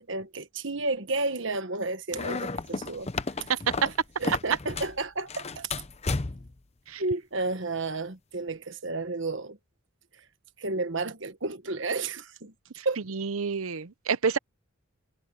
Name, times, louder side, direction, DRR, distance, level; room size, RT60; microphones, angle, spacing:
voice 1, 0.0-3.1 3.4-3.5 3.8-3.9 4.2-5.7 7.0-9.6 10.6-12.5 12.8-13.0, right 3 dB, 60° right, 1.4 m, -32 dB
sound 1, 2.1-5.0 5.3-6.6, left 3 dB, 30° left, 0.7 m, -33 dB
voice 2, 12.8-14.4, right 6 dB, 90° right, 0.7 m, -29 dB
head